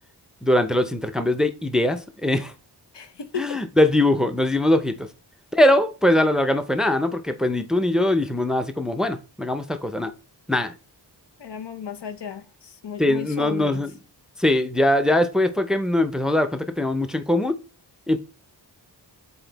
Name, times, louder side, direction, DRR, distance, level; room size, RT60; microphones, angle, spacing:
voice 1, 0.4-2.5 3.4-5.1 5.5-10.1 10.5-10.7 13.0-13.9 14.4-17.6 18.1-18.2, left 1 dB, ahead, 0.5 m, -21 dB
voice 2, 2.9-3.6 11.4-13.8, left 7 dB, 80° left, 0.8 m, -34 dB
7.9 x 4.1 x 4.0 m
wide cardioid pair, 125°, 42 cm